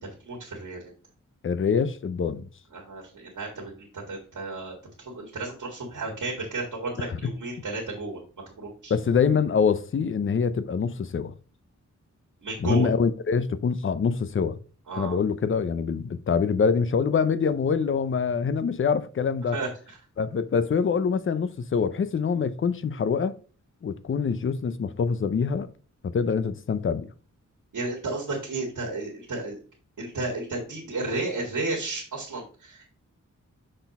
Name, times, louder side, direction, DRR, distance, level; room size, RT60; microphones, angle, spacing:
voice 1, 0.0-0.8 2.7-8.2 8.6-8.9 12.4-12.9 14.9-15.2 19.5-19.7 27.7-29.6 30.0-32.9, right 2 dB, 80° right, 1.8 m, -33 dB
voice 2, 1.4-2.5 7.1-7.3 8.9-11.3 12.6-14.6 14.9-19.6 20.2-23.4 23.8-25.7 26.0-27.1, left 6 dB, 40° left, 0.5 m, -25 dB
6.4 x 4.1 x 4.0 m
wide cardioid pair, 110°, 31 cm